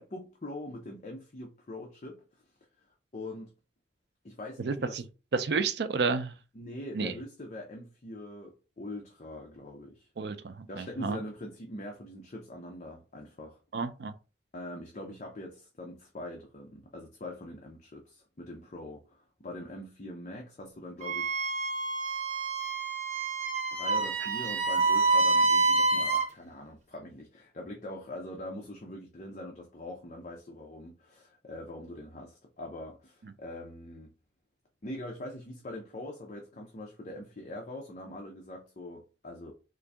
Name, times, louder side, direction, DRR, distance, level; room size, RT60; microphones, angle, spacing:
voice 1, 0.0-2.2 3.1-3.5 4.2-5.0 6.5-10.1 10.7-13.6 14.5-21.4 23.7-34.1 34.8-39.5, left 1 dB, 40° left, 0.6 m, -43 dB
voice 2, 4.6-5.0 5.3-6.3 6.9-7.1 10.2-11.2 13.7-14.1, right 4 dB, 60° right, 0.4 m, -31 dB
Wind instrument woodwind instrument, 21.0-26.3, right 3 dB, 40° right, 1.1 m, -27 dB
3.7 x 2.6 x 3.4 m
head